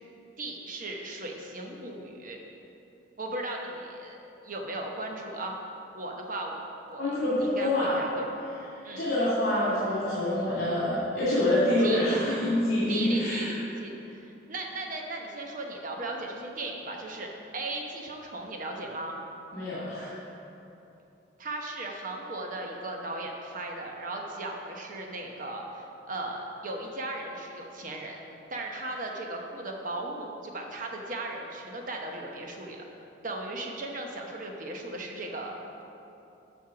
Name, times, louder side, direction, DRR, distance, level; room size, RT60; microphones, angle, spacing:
voice 1, 0.4-2.4 3.2-4.2 4.4-5.6 5.9-6.5 6.9-7.1 7.4-8.2 8.8-9.1 11.8-12.2 12.9-19.2 21.4-28.2 28.5-32.8 33.2-35.6, right 2 dB, 45° right, 1 dB, 0.9 m, -37 dB
voice 2, 7.0-8.0 9.0-13.5 19.5-20.2, left 1 dB, 70° left, -8 dB, 1.9 m, -26 dB
7.7 x 5.6 x 5.7 m, 2.9 s
head